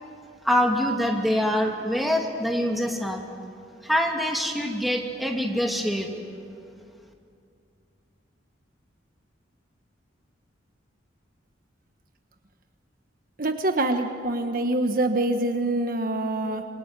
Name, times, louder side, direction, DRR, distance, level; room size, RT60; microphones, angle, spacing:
voice 1, 0.4-3.2 3.8-6.1, equal, ahead, 1 dB, 2.6 m, -25 dB
voice 2, 13.4-16.6, right 2 dB, 45° right, 6 dB, 1.2 m, -25 dB
28.0 x 22.5 x 9.0 m, 2.3 s
head